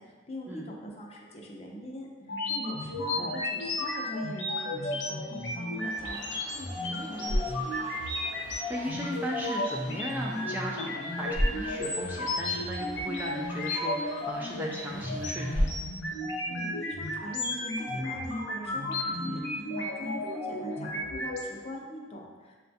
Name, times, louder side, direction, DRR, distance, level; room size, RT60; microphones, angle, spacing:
voice 1, 0.0-7.9 16.5-22.6, equal, 35° left, -1 dB, 0.6 m, -43 dB
sound 1, 2.2-21.4, left 1 dB, 70° left, 0.8 m, -33 dB
sound 2, 5.9-15.7, equal, 85° right, 1.2 m, -50 dB
sound 3, 6.9-18.0, equal, 60° right, 0.6 m, -37 dB
voice 2, 8.7-15.7, equal, 10° right, -2 dB, 0.3 m, -36 dB
6.4 x 2.2 x 2.7 m, 1.4 s
head